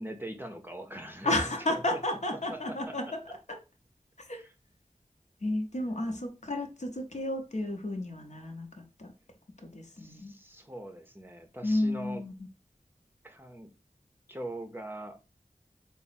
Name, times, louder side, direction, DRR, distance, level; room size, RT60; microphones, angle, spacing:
voice 1, 0.0-2.0 2.5-2.6 2.9-3.0 4.3-4.5 5.8-5.9 9.9-12.2 13.2-13.7 14.3-15.2, right 1 dB, 15° right, 5 dB, 0.6 m, -42 dB
voice 2, 1.2-3.2 3.5-3.6 4.2-4.4 5.4-9.1 9.6-10.3 11.6-12.3, left 1 dB, 60° left, 3 dB, 0.8 m, -32 dB
3.5 x 2.0 x 4.1 m, 0.30 s
wide cardioid pair, 45°, 14 cm